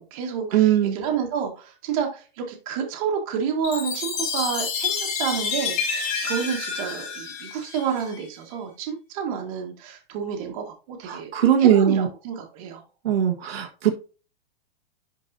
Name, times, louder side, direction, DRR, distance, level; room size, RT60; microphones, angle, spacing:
voice 1, 0.0-11.3 11.6-12.8, right 7 dB, 35° right, 2 dB, 1.8 m, -29 dB
voice 2, 0.5-1.0 11.1-12.1 13.0-13.9, right 10 dB, 75° right, 1 dB, 1.6 m, -20 dB
Chime, 3.6-8.2, left 5 dB, 30° left, 1.9 m, -29 dB
11.0 x 4.6 x 2.7 m, 0.34 s
supercardioid pair, 175°, 31 cm